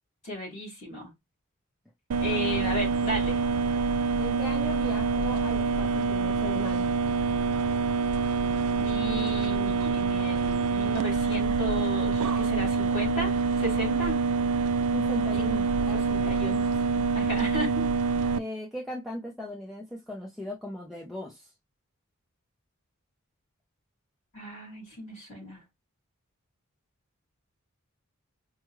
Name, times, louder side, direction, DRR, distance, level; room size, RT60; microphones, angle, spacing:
voice 1, 0.2-1.1 2.2-3.4 8.8-14.2 15.4-15.5 16.1-16.7 17.1-17.8 24.3-25.6, equal, 30° left, 3.3 m, -35 dB
sound 1, 2.1-18.4, right 4 dB, 85° right, 0.4 m, -26 dB
voice 2, 4.2-6.9 14.9-16.7 17.0-17.1 18.4-21.5, left 1 dB, ahead, 0.8 m, -38 dB
5.1 x 2.3 x 3.2 m
head